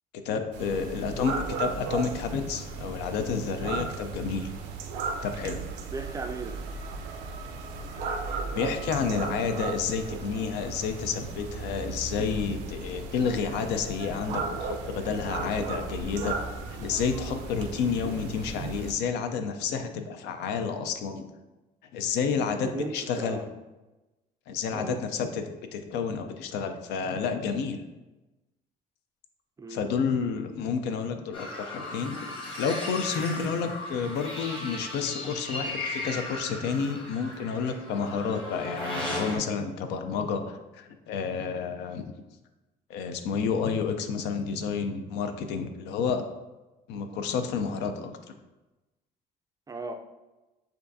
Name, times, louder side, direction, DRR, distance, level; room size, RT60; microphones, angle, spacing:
voice 1, 0.2-4.5 5.2-5.6 8.3-16.4 16.8-21.3 21.9-23.4 24.5-27.8 29.7-42.1 42.9-46.2 46.9-48.1, left 6 dB, 90° left, 7 dB, 0.5 m, -30 dB
sound 1, 0.5-18.9, right 4 dB, 85° right, 0.5 m, -36 dB
voice 2, 5.9-6.6 22.6-23.4 24.7-25.0 29.6-29.9 49.7-49.9, right 3 dB, 20° right, 5 dB, 0.3 m, -36 dB
sound 2, 31.3-39.4, left 2 dB, 30° left, 1.0 m, -36 dB
6.7 x 2.5 x 2.6 m, 1.1 s
cardioid pair, 110°, 17 cm